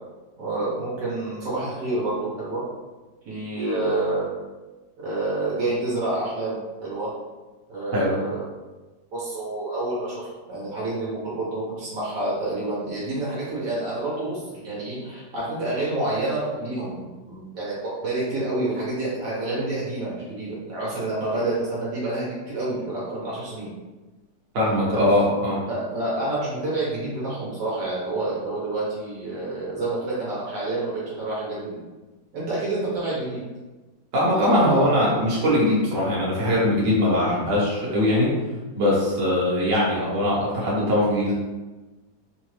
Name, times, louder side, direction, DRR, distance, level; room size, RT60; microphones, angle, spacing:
voice 1, 0.4-2.6 3.2-4.3 5.0-7.1 7.7-8.4 9.1-23.7 24.9-25.1 25.7-31.8 32.3-33.4 34.2-34.9, right 2 dB, 65° right, -7 dB, 1.5 m, -28 dB
voice 2, 24.5-25.6 34.1-38.3 38.7-41.3, left 1 dB, 50° right, -6 dB, 1.4 m, -21 dB
3.9 x 2.5 x 3.1 m, 1.2 s
omnidirectional pair, 2.1 m